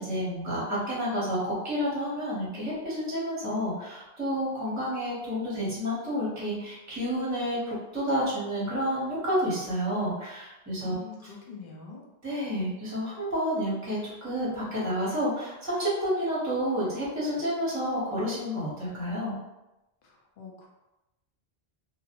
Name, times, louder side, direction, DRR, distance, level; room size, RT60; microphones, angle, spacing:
voice 1, 0.0-11.0 12.2-19.4, equal, 20° right, -7 dB, 0.8 m, -30 dB
voice 2, 10.8-12.0 20.0-20.7, left 5 dB, 60° left, -2 dB, 0.6 m, -45 dB
2.3 x 2.0 x 2.8 m, 0.98 s
omnidirectional pair, 1.1 m